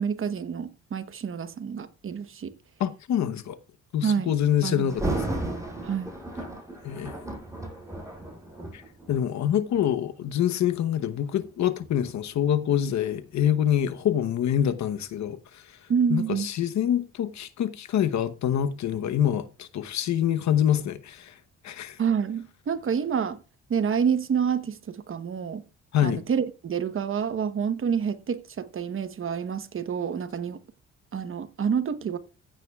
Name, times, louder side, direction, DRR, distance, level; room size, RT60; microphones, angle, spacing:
voice 1, 0.0-2.5 4.0-4.3 4.6-5.0 5.8-6.1 15.9-16.5 22.0-23.4 23.7-25.6 26.0-30.6 31.1-32.2, right 7 dB, 45° right, 1.1 m, -28 dB
voice 2, 2.8-3.6 3.9-5.1 6.8-7.1 8.7-8.8 9.1-15.6 16.1-21.3 21.6-22.0 25.9-26.2, left 10 dB, 65° left, 1.0 m, -26 dB
Thunder, 4.9-9.9 10.5-10.7 11.4-14.2 14.5-14.6, right 2 dB, 10° right, 6.5 m, -35 dB
15.0 x 9.1 x 2.3 m
cardioid pair, 90°, 30 cm